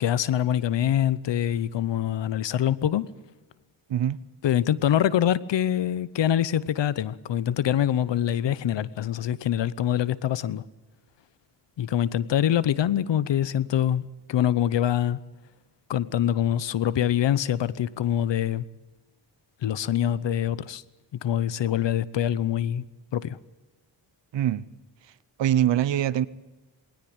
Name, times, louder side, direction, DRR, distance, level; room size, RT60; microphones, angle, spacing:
voice 1, 0.0-3.1 4.4-10.6 11.8-14.0 14.3-15.2 15.9-18.7 19.6-20.8 21.2-22.8 23.1-23.4, left 10 dB, 85° left, 0.9 m, -24 dB
voice 2, 24.3-24.6 25.4-26.3, right 11 dB, 85° right, 0.8 m, -23 dB
20.5 x 18.0 x 8.8 m
cardioid pair, 60°, 42 cm